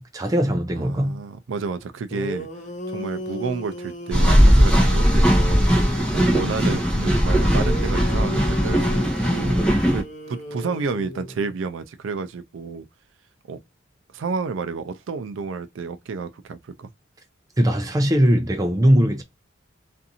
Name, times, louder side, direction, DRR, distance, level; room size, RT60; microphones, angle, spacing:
voice 1, 0.0-1.2 17.6-19.2, equal, 20° right, 0.4 m, -20 dB
voice 2, 0.8-2.5 2.9-5.7 6.1-9.6 9.9-12.9 13.5-13.6 14.1-16.9, right 4 dB, 80° right, 0.4 m, -30 dB
sound 1, 1.8-1.9 2.1-6.3 7.5-11.5, left 1 dB, 35° left, 0.6 m, -35 dB
sound 2, 4.1-10.0, equal, 5° left, 0.9 m, -18 dB
2.6 x 2.5 x 2.6 m
head